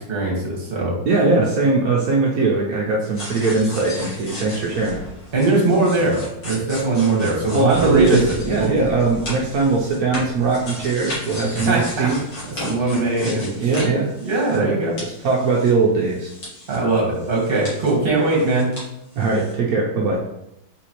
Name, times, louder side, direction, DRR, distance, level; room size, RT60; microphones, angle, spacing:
voice 1, 0.1-1.0 5.3-8.7 11.5-12.1 12.5-13.7 14.2-14.9 16.7-18.7, right 2 dB, 30° right, -3 dB, 1.3 m, -21 dB
voice 2, 1.1-5.0 7.5-12.2 13.0-14.2 14.5-14.7 15.0-16.3 19.2-20.2, right 3 dB, 75° right, -3 dB, 0.8 m, -20 dB
sound 1, 3.1-14.7 15.0-16.8 17.1-18.9 19.1-19.5, left 1 dB, 50° left, 1.9 m, -34 dB
4.1 x 3.9 x 3.0 m, 0.83 s
omnidirectional pair, 2.2 m